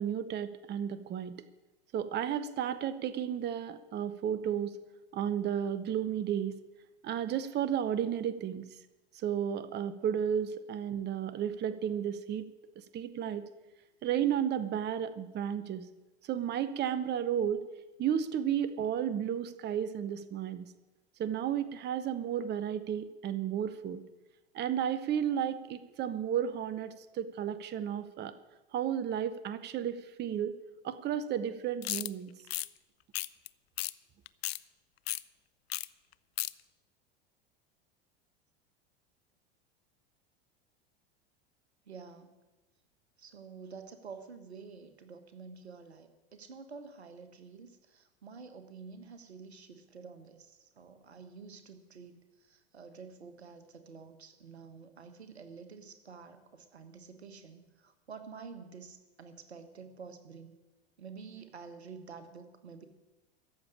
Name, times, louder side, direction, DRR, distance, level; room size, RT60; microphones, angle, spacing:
voice 1, 0.0-1.3 1.9-4.8 5.1-6.5 7.0-8.7 9.2-12.5 12.9-13.5 14.0-15.9 16.3-17.6 18.0-20.6 21.2-24.0 24.5-28.3 28.7-30.6 30.8-32.3, right 9 dB, 35° right, 13 dB, 0.8 m, -33 dB
sound 1, 31.8-32.1 32.5-32.7 33.1-33.5 33.8-33.9 34.3-34.6 35.1-35.2 35.7-35.9 36.1-36.5, left 15 dB, 75° left, 0.5 m, -34 dB
voice 2, 41.8-42.3 43.2-60.5 61.0-62.9, right 5 dB, 90° right, 9 dB, 1.4 m, -49 dB
14.5 x 7.0 x 9.9 m, 1.1 s
hypercardioid pair, 90°, 31 cm